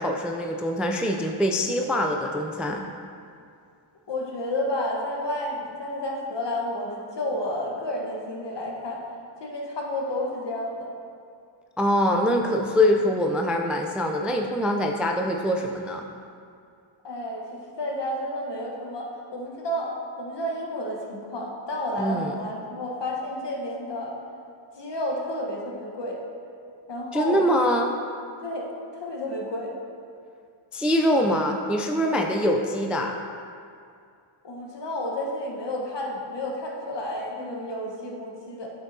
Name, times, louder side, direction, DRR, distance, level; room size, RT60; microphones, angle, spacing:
voice 1, 0.0-2.9 11.8-16.1 22.0-22.4 27.1-27.9 30.7-33.2, equal, ahead, 2 dB, 0.3 m, -24 dB
voice 2, 4.1-9.0 9.4-10.9 17.0-24.1 24.8-26.2 26.9-27.4 28.4-29.7 34.4-38.7, left 1 dB, 60° left, -1 dB, 1.3 m, -31 dB
8.3 x 5.9 x 2.7 m, 2.4 s
cardioid pair, 75°, 49 cm